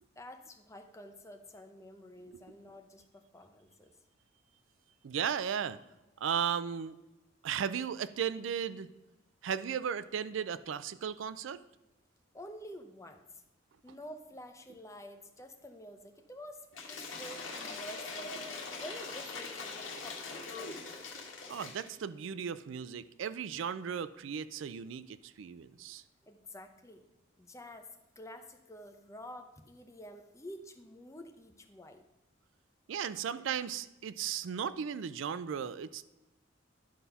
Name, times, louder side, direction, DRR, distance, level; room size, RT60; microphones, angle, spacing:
voice 1, 0.2-3.9 12.3-13.4 13.8-21.0 26.2-27.1 27.4-27.9 28.2-32.0, equal, 15° left, 6 dB, 0.7 m, -49 dB
voice 2, 5.0-5.8 6.2-6.9 7.4-8.9 9.4-11.6 21.5-26.0 32.9-36.1, right 7 dB, 75° right, 14 dB, 0.4 m, -36 dB
Cheering / Applause / Crowd, 16.7-21.9, left 4 dB, 80° left, 1.6 m, -42 dB
11.5 x 4.2 x 5.6 m, 0.97 s
head